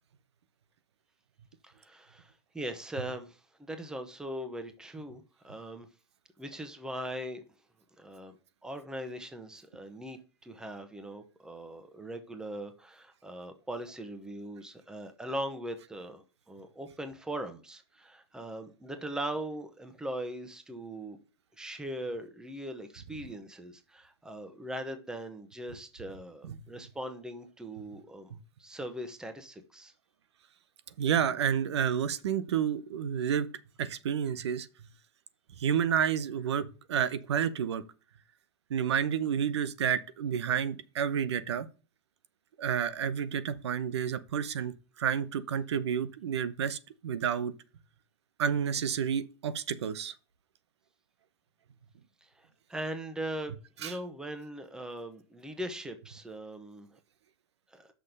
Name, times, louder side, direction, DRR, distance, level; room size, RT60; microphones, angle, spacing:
voice 1, 1.6-5.9 6.4-7.4 8.0-8.4 8.6-21.2 21.6-28.3 28.6-29.9 52.2-56.9 57.7-57.9, right 1 dB, 5° right, 1.2 m, -40 dB
voice 2, 31.0-33.5 33.8-34.7 35.6-37.8 38.7-41.7 42.6-44.7 45.0-46.8 47.0-47.5 48.4-50.1 53.8-53.9, right 8 dB, 85° right, 0.9 m, -30 dB
6.3 x 5.4 x 6.6 m
hypercardioid pair, 135°, 14 cm